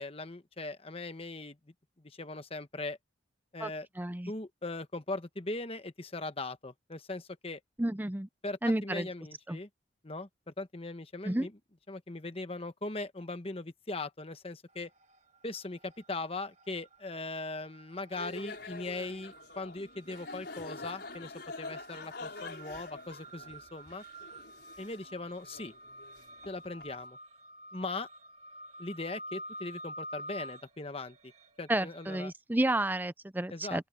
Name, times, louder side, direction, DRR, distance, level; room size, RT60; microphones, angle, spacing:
voice 1, 0.0-1.6 2.0-3.0 3.5-3.9 4.3-7.6 8.4-9.7 10.0-11.5 11.9-14.9 15.4-24.0 24.8-25.7 26.4-27.2 27.7-28.1 28.8-31.3 31.6-32.3 33.5-33.9, left 2 dB, 30° left, 1.1 m, -40 dB
voice 2, 4.0-4.3 7.8-8.3 8.6-9.1 9.5-9.6 11.3-11.5 31.7-33.8, right 1 dB, 10° right, 0.5 m, -31 dB
sound 1, 14.7-15.4 15.7-32.3, right 1 dB, 35° right, 1.9 m, -49 dB
sound 2, 18.1-26.9, left 3 dB, 55° left, 6.1 m, -46 dB
open air
head